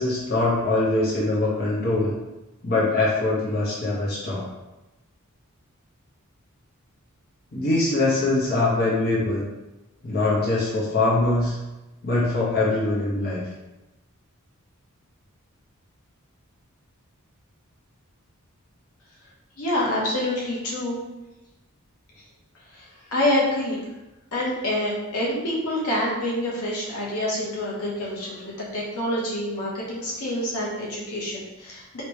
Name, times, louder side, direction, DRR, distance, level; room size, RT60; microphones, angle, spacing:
voice 1, 0.0-2.1 2.6-4.4 7.5-9.5 10.0-11.6 12.0-13.4, left 2 dB, 45° left, -6 dB, 0.9 m, -23 dB
voice 2, 19.6-21.0 22.7-23.8 24.3-32.0, left 1 dB, 85° left, -5 dB, 1.0 m, -27 dB
3.2 x 2.9 x 3.1 m, 1.0 s
head